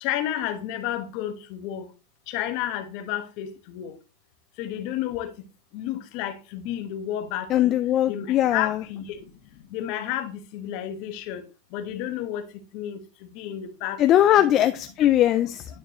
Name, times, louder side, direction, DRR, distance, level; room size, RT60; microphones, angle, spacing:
voice 1, 0.0-1.8 2.3-3.9 4.6-5.3 5.7-7.5 8.1-9.2 9.7-11.4 11.7-12.4 12.7-13.0 13.3-14.0 14.4-14.5, left 11 dB, 55° left, 1.1 m, -31 dB
voice 2, 7.5-8.8 14.0-15.7, left 12 dB, 35° left, 0.4 m, -20 dB
9.5 x 4.6 x 3.0 m
supercardioid pair, 130°, 0 cm